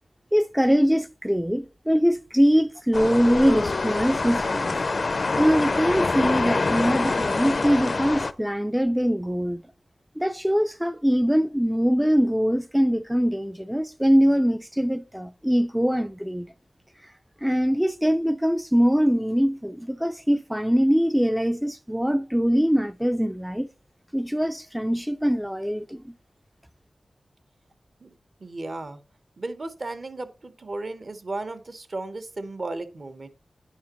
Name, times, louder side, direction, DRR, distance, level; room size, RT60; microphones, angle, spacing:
voice 1, 0.3-4.8 5.3-9.6 10.2-16.5 17.0-17.1 17.4-23.7 24.1-26.1, equal, 5° right, 0.4 m, -22 dB
sound 1, 2.9-8.3, left 3 dB, 55° left, 0.5 m, -25 dB
voice 2, 28.4-29.0 29.4-33.3, right 2 dB, 55° right, 1.0 m, -34 dB
9.5 x 6.0 x 3.0 m
wide cardioid pair, 70°, 0 cm